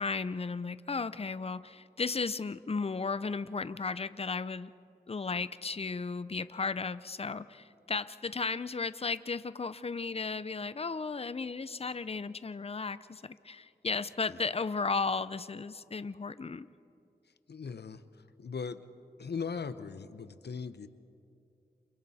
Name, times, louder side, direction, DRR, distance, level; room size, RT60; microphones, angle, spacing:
voice 1, 0.0-4.7 5.1-16.7, left 4 dB, 35° left, 14 dB, 0.6 m, -35 dB
voice 2, 17.5-18.9 19.2-20.9, left 5 dB, 75° left, 12 dB, 0.8 m, -39 dB
29.5 x 27.5 x 4.2 m, 2.6 s
wide cardioid pair, 80°, 17 cm